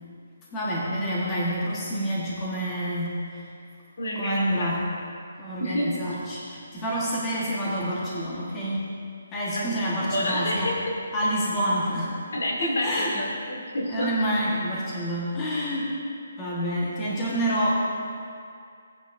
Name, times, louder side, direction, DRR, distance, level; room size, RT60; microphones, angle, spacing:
voice 1, 0.5-3.5 4.1-5.0 5.4-8.9 9.3-10.7 11.1-12.2 12.6-13.1 13.9-15.9 16.4-17.9, equal, 15° left, -7 dB, 1.3 m, -28 dB
voice 2, 4.0-4.8 5.6-6.0 9.6-10.9 12.3-14.1, left 1 dB, 75° left, -2 dB, 2.4 m, -29 dB
16.5 x 9.0 x 2.6 m, 2.3 s
hypercardioid pair, 170°, 0 cm